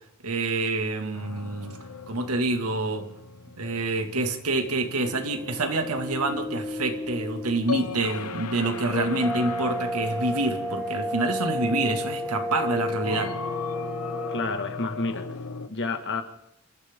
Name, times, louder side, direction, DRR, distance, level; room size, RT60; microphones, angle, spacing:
voice 1, 0.2-1.8 2.1-3.1 3.6-13.3, right 2 dB, 80° right, 5 dB, 2.2 m, -27 dB
sound 1, 1.1-15.7, left 4 dB, 85° left, 1.1 m, -39 dB
sound 2, 5.0-14.4, left 1 dB, 5° right, 3.4 m, -32 dB
voice 2, 14.3-16.2, left 3 dB, 55° left, 6 dB, 1.9 m, -30 dB
27.5 x 14.0 x 3.7 m, 0.80 s
head